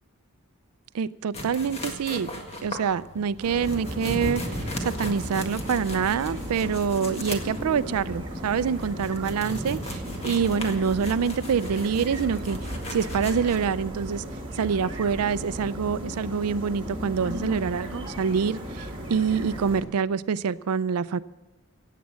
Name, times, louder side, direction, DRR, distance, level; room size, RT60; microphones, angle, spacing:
voice 1, 0.9-2.3 2.6-14.2 14.5-21.2, right 6 dB, 85° right, 0.4 m, -26 dB
sound 1, 1.3-13.7, left 1 dB, 30° left, 1.7 m, -37 dB
sound 2, 3.4-19.8, equal, 25° right, 2.2 m, -36 dB
sound 3, 10.0-14.9, right 1 dB, 40° right, 1.2 m, -40 dB
16.5 x 8.4 x 7.5 m
head